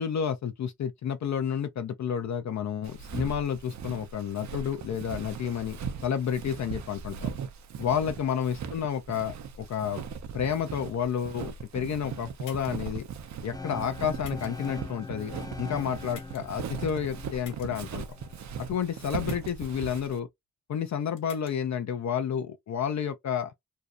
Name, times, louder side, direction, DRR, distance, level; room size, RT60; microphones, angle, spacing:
voice 1, 0.0-7.3 7.8-10.0 10.3-13.1 13.4-18.0 18.7-20.3 20.7-23.5, left 8 dB, 65° left, 0.5 m, -30 dB
Walk footsteps, 2.8-20.2, right 7 dB, 65° right, 0.5 m, -39 dB
sound 1, 12.4-12.9 14.2-14.7 16.1-16.6 17.4-17.7 19.2-19.7 21.2-21.5, left 5 dB, 80° left, 1.0 m, -49 dB
sound 2, 13.5-19.5, left 3 dB, 10° left, 0.4 m, -43 dB
2.7 x 2.0 x 2.3 m
cardioid pair, 45°, 31 cm